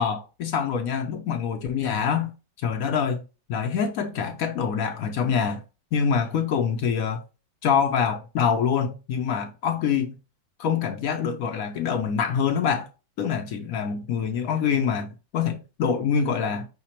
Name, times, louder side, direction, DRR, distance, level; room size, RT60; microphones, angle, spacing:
voice 1, 0.0-2.3 2.6-3.2 3.5-5.6 5.9-7.2 7.6-10.1 10.6-12.9 13.2-16.7, left 7 dB, 70° left, 0.9 m, -25 dB
5.7 x 2.1 x 4.2 m
omnidirectional pair, 1.9 m